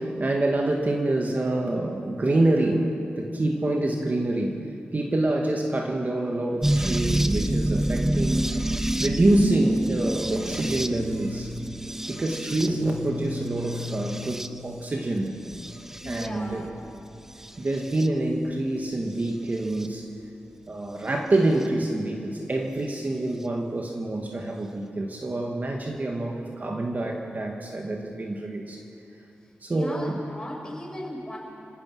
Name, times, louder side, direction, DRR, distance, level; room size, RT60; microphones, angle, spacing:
voice 1, 0.0-11.5 12.1-15.3 16.1-16.7 17.6-20.1 20.7-28.8 29.6-30.2, right 2 dB, 40° right, 1 dB, 1.9 m, -26 dB
sound 1, 6.6-14.8 15.5-16.3 17.4-18.1 19.8-19.9 21.6-21.7, right 1 dB, 10° right, 0.8 m, -28 dB
sound 2, 10.2-21.5, left 3 dB, 75° right, 3.6 m, -42 dB
voice 2, 16.0-16.6 29.7-31.4, left 1 dB, 15° left, -2 dB, 6.9 m, -37 dB
30.0 x 17.0 x 6.2 m, 2.7 s
wide cardioid pair, 80°, 4 cm